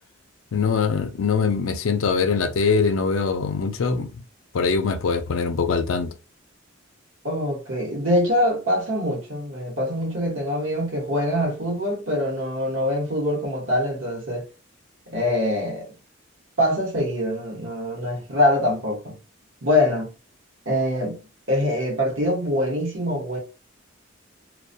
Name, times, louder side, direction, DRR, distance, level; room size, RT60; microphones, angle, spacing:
voice 1, 0.5-4.1 4.5-6.1, left 5 dB, 80° left, 0.4 m, -22 dB
voice 2, 7.2-14.4 15.1-15.9 16.6-19.2 19.6-20.1 20.7-21.2 21.5-23.4, left 1 dB, 70° right, 1.0 m, -24 dB
2.2 x 2.1 x 2.6 m
head